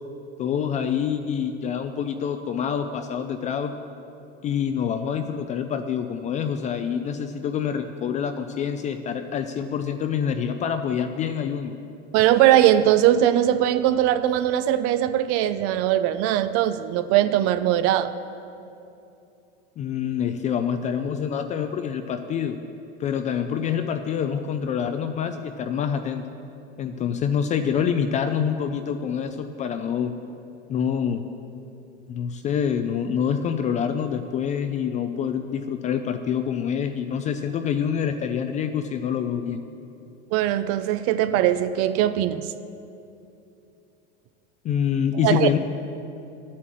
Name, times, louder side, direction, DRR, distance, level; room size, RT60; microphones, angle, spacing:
voice 1, 0.4-3.7 4.4-11.7 19.8-22.6 23.0-26.2 26.8-30.1 30.7-31.2 32.1-39.6 44.6-45.6, left 8 dB, 20° left, 8 dB, 0.3 m, -26 dB
voice 2, 12.1-18.1 40.3-42.5 45.2-45.5, right 12 dB, 45° right, 13 dB, 0.5 m, -20 dB
11.0 x 8.5 x 7.5 m, 2.7 s
supercardioid pair, 140°, 35 cm